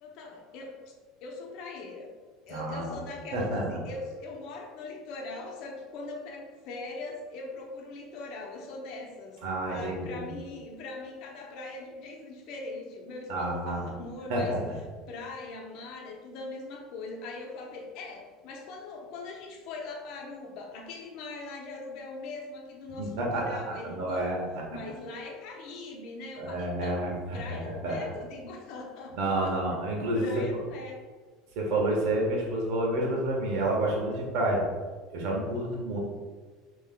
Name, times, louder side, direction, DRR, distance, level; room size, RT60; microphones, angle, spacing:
voice 1, 0.0-0.9 1.2-2.1 2.5-9.4 9.7-14.5 15.1-24.4 24.7-29.6 30.1-31.0, left 3 dB, 65° left, 1 dB, 0.8 m, -41 dB
voice 2, 2.5-2.9 3.3-3.8 9.4-10.3 13.3-13.8 14.3-14.7 23.0-23.4 23.8-24.4 26.4-28.1 29.2-30.4 31.5-34.6 35.1-36.0, right 1 dB, 70° right, -2 dB, 1.2 m, -29 dB
5.5 x 3.0 x 2.2 m, 1.4 s
supercardioid pair, 115°, 0 cm